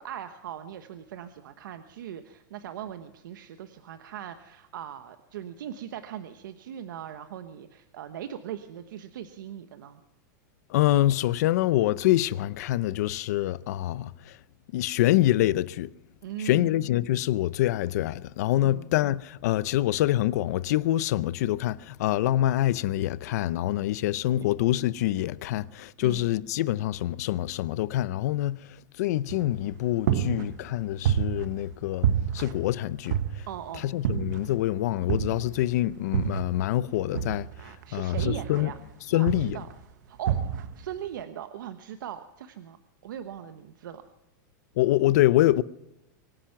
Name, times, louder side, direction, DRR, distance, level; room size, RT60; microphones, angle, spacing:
voice 1, 0.0-10.0 16.2-16.8 18.6-18.9 26.0-26.3 33.5-33.9 37.6-38.8 39.1-39.7 40.1-42.8 43.0-44.0, right 10 dB, 85° right, 1.2 m, -39 dB
voice 2, 10.7-14.4 14.7-15.9 16.4-28.7 29.0-32.1 32.3-33.4 33.8-37.5 37.9-38.7 39.1-39.6 44.8-45.6, left 14 dB, 55° left, 0.6 m, -25 dB
sound 1, 29.3-29.7 30.1-31.8 32.0-33.7 34.0-34.6 35.1-36.7 37.1-38.9 39.3-39.7 40.3-40.9, right 9 dB, 65° right, 1.3 m, -29 dB
24.0 x 10.0 x 5.9 m
supercardioid pair, 170°, 10 cm